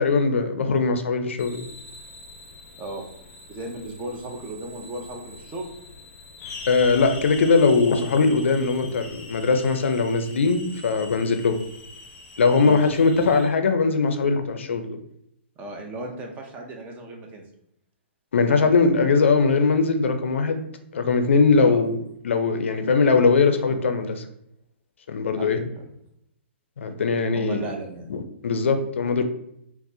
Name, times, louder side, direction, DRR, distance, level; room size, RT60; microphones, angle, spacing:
voice 1, 0.0-1.7 6.7-11.6 12.4-15.0 18.3-20.6 20.9-22.0 22.2-24.2 25.1-25.6 26.8-27.6 28.1-29.2, left 4 dB, 80° left, 7 dB, 0.4 m, -20 dB
sound 1, 1.4-13.5, left 3 dB, 35° left, 0.6 m, -42 dB
voice 2, 3.5-5.7 12.6-12.9 15.6-17.4 21.6-21.8 25.4-25.9 27.3-28.1, right 2 dB, 25° right, 2 dB, 0.6 m, -35 dB
4.0 x 2.1 x 2.6 m, 0.75 s
hypercardioid pair, 130°, 7 cm